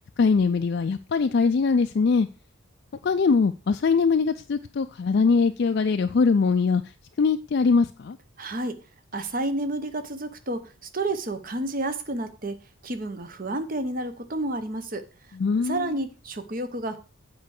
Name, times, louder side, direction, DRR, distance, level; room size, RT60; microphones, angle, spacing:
voice 1, 0.2-2.3 3.0-6.8 7.2-8.2 15.4-15.9, left 4 dB, 50° left, 0.3 m, -22 dB
voice 2, 8.4-8.8 9.1-10.6 10.9-12.6 12.8-15.0 15.6-17.0, right 2 dB, 40° right, 0.9 m, -30 dB
8.2 x 4.7 x 6.4 m
head